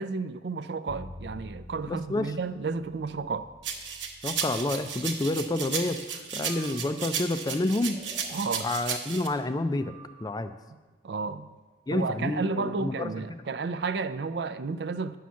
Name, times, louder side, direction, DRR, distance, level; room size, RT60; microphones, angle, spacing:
voice 1, 0.0-3.5 8.3-8.7 11.0-11.5 11.9-15.2, right 4 dB, 65° right, 12 dB, 0.4 m, -32 dB
Bowed string instrument, 0.9-7.0, left 1 dB, 60° left, 0.8 m, -49 dB
voice 2, 1.9-2.3 4.2-8.0 8.6-9.9 10.2-10.5 11.9-13.1, left 2 dB, 20° left, 10 dB, 0.4 m, -29 dB
sound 1, 3.6-9.3, right 6 dB, 90° right, 1.0 m, -34 dB
Breathing, 6.4-7.1 7.9-8.6 9.8-10.6, right 3 dB, 25° right, 1.3 m, -50 dB
9.3 x 5.8 x 6.2 m, 1.3 s
head